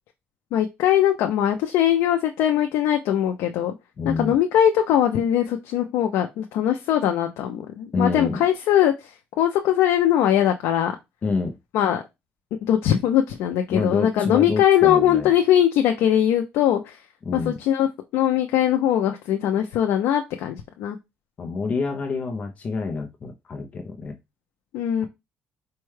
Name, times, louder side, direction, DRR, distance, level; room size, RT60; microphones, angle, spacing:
voice 1, 0.5-3.7 4.1-9.1 9.4-10.9 11.7-12.0 12.6-17.0 17.3-17.9 18.1-21.0 24.7-25.1, left 10 dB, 85° left, 4 dB, 0.4 m, -21 dB
voice 2, 4.0-4.3 7.9-8.4 11.2-11.6 13.7-15.3 17.2-17.6 21.4-24.2, left 4 dB, 35° left, 4 dB, 0.5 m, -27 dB
4.4 x 2.2 x 3.1 m, 0.22 s
cardioid pair, 145°, 4 cm